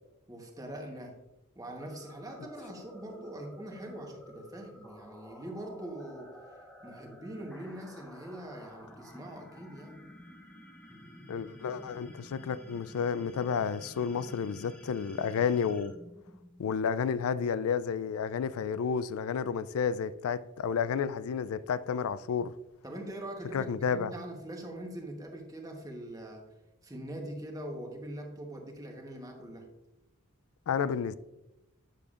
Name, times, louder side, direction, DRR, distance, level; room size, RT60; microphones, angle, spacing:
voice 1, 0.3-1.2 1.5-6.4 6.8-10.0 22.8-26.5 26.8-29.7, right 1 dB, 15° right, 1.0 m, -43 dB
sound 1, 1.8-16.9, left 1 dB, 5° left, 0.7 m, -52 dB
voice 2, 11.3-15.9 16.6-22.5 23.5-24.1 30.7-31.1, left 6 dB, 75° left, 0.3 m, -31 dB
9.0 x 6.7 x 2.4 m
head